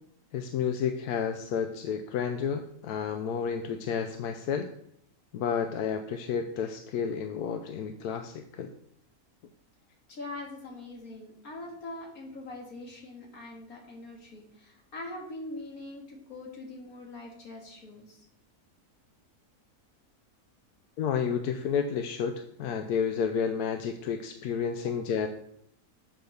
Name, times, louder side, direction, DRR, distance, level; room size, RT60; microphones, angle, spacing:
voice 1, 0.3-4.7 5.3-8.7 21.0-25.3, left 7 dB, 90° left, 6 dB, 1.2 m, -31 dB
voice 2, 10.1-18.2, left 2 dB, 70° left, 0 dB, 2.3 m, -43 dB
7.6 x 5.1 x 6.4 m, 0.69 s
omnidirectional pair, 1.6 m